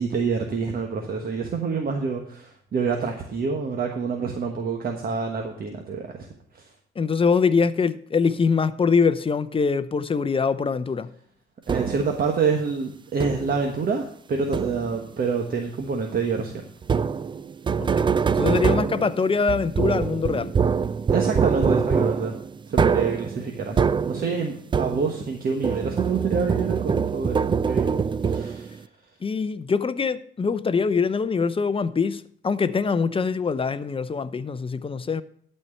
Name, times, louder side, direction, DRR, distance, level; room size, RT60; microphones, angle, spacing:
voice 1, 0.0-6.3 6.5-6.6 11.7-16.5 21.1-22.4 22.7-28.0 28.2-28.8, right 5 dB, 50° right, 1.3 m, -27 dB
voice 2, 7.0-11.1 17.8-18.1 18.3-20.5 29.2-35.2, left 5 dB, 25° left, 0.6 m, -23 dB
sound 1, 11.7-12.2 13.2-13.7 14.5-15.1 16.8-25.3 25.6-28.8, right 6 dB, 25° right, 0.4 m, -24 dB
12.0 x 4.5 x 6.6 m
cardioid pair, 90°, 20 cm